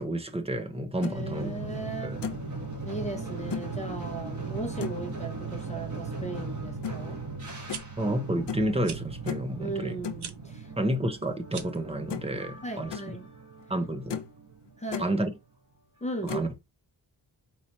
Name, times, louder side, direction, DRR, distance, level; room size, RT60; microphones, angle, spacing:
voice 1, 0.0-1.5 2.0-2.2 8.0-10.0 10.8-12.9 13.7-14.2 15.0-15.3 16.2-16.5, right 1 dB, 15° right, 0.7 m, -30 dB
sound 1, 0.8-1.2 1.7-1.8 2.2-2.5 3.5-3.7 4.8-5.1 6.8-7.0 7.7-7.9 8.5-8.7 9.3-9.5 10.0-10.2 11.6-11.7 12.1-12.4 12.7-13.1 13.6-13.7 14.1-14.4 14.7-15.1 16.3-16.5, left 8 dB, 85° left, 0.8 m, -36 dB
voice 2, 1.0-2.1 2.8-7.2 7.5-7.7 9.6-10.7 12.6-13.3 14.8-15.1 16.0-16.5, right 2 dB, 15° left, 0.9 m, -37 dB
sound 2, 1.1-15.3, right 4 dB, 45° right, 1.9 m, -38 dB
sound 3, 7.7-7.8 8.8-9.0 10.2-10.4 11.4-11.8, right 7 dB, 70° right, 0.8 m, -39 dB
4.6 x 2.8 x 4.0 m
wide cardioid pair, 175°, 41 cm